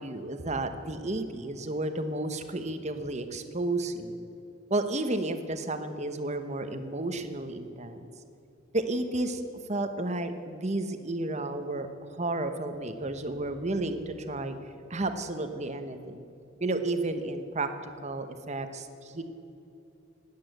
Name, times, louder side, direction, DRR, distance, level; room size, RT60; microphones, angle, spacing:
voice 1, 0.0-4.2 4.7-8.1 8.7-9.4 9.7-14.6 14.9-16.2 16.6-19.2, right 2 dB, 35° right, 8 dB, 1.0 m, -32 dB
20.5 x 8.7 x 8.0 m, 2.8 s
head